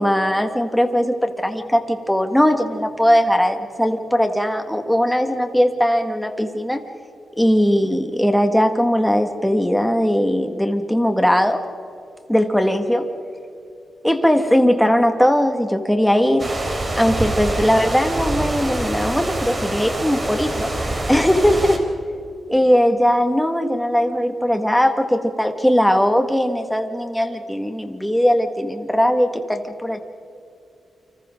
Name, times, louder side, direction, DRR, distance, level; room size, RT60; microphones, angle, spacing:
voice 1, 0.0-6.8 7.4-11.6 12.3-13.1 14.0-16.7 17.0-21.8 22.5-30.0, equal, 5° left, 5 dB, 1.9 m, -19 dB
sound 1, 16.4-21.8, right 1 dB, 30° right, 3.5 m, -25 dB
29.5 x 26.0 x 3.9 m, 2.6 s
wide cardioid pair, 120°, 0 cm